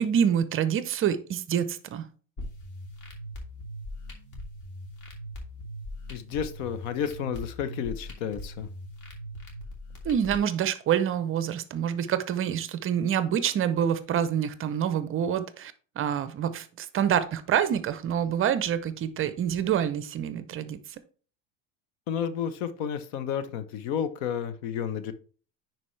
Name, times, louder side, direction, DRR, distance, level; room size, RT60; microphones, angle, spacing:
voice 1, 0.0-2.1 10.0-20.8, right 9 dB, 30° right, 13 dB, 0.6 m, -27 dB
sound 1, 2.4-10.4, equal, 45° left, 2.8 m, -40 dB
voice 2, 6.1-8.7 22.1-25.1, left 8 dB, 65° left, 12 dB, 1.0 m, -31 dB
9.8 x 4.6 x 3.2 m, 0.41 s
supercardioid pair, 120°, 41 cm